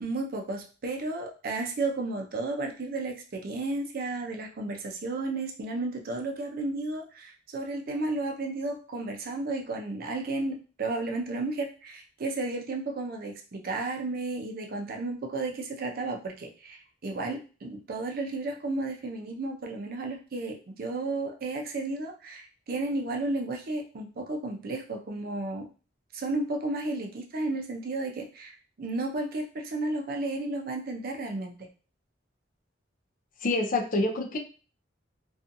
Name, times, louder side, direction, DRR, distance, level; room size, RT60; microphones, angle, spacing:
voice 1, 0.0-25.7 26.1-31.6, right 2 dB, 50° right, 3 dB, 0.5 m, -33 dB
voice 2, 33.4-34.4, left 2 dB, 45° left, 4 dB, 0.4 m, -27 dB
2.6 x 2.3 x 2.5 m, 0.36 s
head